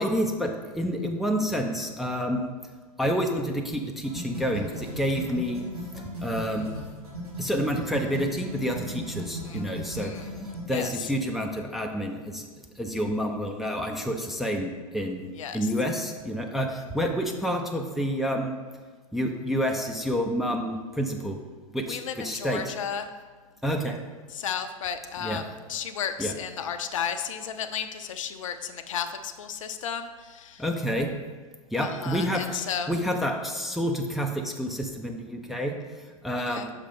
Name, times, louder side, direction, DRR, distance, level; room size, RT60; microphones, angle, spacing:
voice 1, 0.0-2.5 3.0-5.6 6.2-6.7 7.4-10.3 10.7-12.5 12.8-18.6 19.1-21.4 21.7-22.6 23.6-24.0 25.2-25.4 26.2-26.3 30.6-31.1 31.7-36.7, equal, ahead, 2 dB, 0.4 m, -29 dB
sound 1, 4.0-10.6, right 1 dB, 80° right, 1.8 m, -36 dB
voice 2, 9.3-9.6 10.0-10.3 10.7-11.1 15.4-15.7 21.9-23.1 24.3-30.6 31.8-32.9 36.5-36.7, left 8 dB, 60° left, 9 dB, 0.5 m, -34 dB
6.4 x 4.9 x 3.6 m, 1.4 s
figure-of-eight pair, 95°, 19 cm